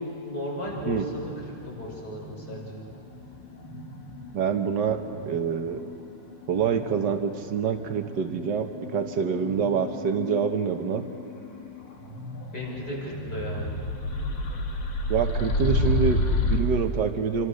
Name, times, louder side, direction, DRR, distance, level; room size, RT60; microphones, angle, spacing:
voice 1, 0.3-2.8 12.5-13.7, left 1 dB, 65° left, -3 dB, 6.1 m, -35 dB
sound 1, 0.7-7.4 7.7-16.6, left 2 dB, 80° left, 2.6 m, -32 dB
voice 2, 4.3-5.0 5.3-5.8 6.5-11.0 15.1-17.5, right 6 dB, 70° right, 6 dB, 1.9 m, -26 dB
28.0 x 25.0 x 6.5 m, 2.8 s
omnidirectional pair, 2.0 m